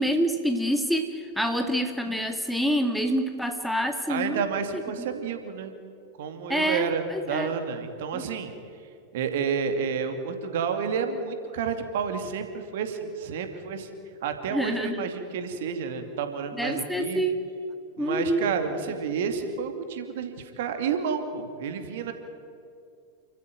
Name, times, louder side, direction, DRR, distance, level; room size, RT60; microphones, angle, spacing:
voice 1, 0.0-4.4 4.7-4.8 6.5-7.5 8.1-8.2 14.5-15.0 16.6-17.5 18.0-18.5, equal, ahead, 5 dB, 1.8 m, -27 dB
voice 2, 4.1-5.7 6.2-8.5 9.1-13.9 14.2-17.2 18.0-22.1, right 6 dB, 55° right, 7 dB, 2.5 m, -30 dB
29.0 x 14.5 x 9.2 m, 2.4 s
figure-of-eight pair, 90°, 0 cm